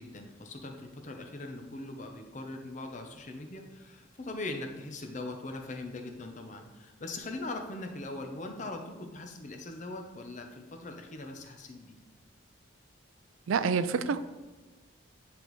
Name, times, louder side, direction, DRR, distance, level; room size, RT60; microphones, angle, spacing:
voice 1, 0.0-12.0, left 2 dB, 35° left, 3 dB, 0.7 m, -41 dB
voice 2, 13.5-14.2, right 5 dB, 85° right, 13 dB, 0.4 m, -27 dB
10.0 x 3.5 x 3.1 m, 1.3 s
head